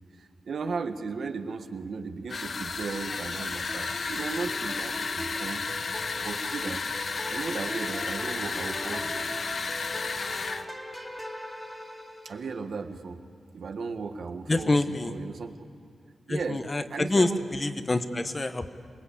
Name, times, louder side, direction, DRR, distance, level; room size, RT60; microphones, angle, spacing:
voice 1, 0.2-5.6 6.2-6.8 7.3-9.2 12.2-13.2 13.5-15.6 16.3-16.6 16.9-17.4, right 4 dB, 65° right, 7 dB, 1.5 m, -36 dB
sound 1, 2.3-10.7, left 4 dB, 50° left, 1.0 m, -33 dB
sound 2, 3.7-12.6, equal, ahead, 2.4 m, -41 dB
voice 2, 14.5-15.1 16.3-18.7, left 2 dB, 25° left, 9 dB, 1.1 m, -26 dB
27.0 x 20.5 x 8.6 m, 2.2 s
wide cardioid pair, 100°, 0 cm